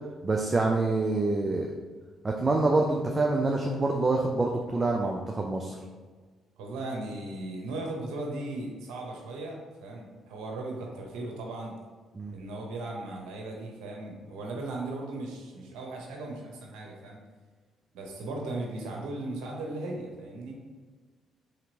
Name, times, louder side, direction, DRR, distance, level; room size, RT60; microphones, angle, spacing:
voice 1, 0.2-1.7 2.2-5.8 12.2-12.3, right 2 dB, 30° right, 1 dB, 0.4 m, -26 dB
voice 2, 6.6-11.8 12.3-17.2 17.9-20.6, right 2 dB, 80° right, 0 dB, 0.7 m, -37 dB
3.3 x 2.9 x 3.9 m, 1.4 s
hypercardioid pair, 55°, 0 cm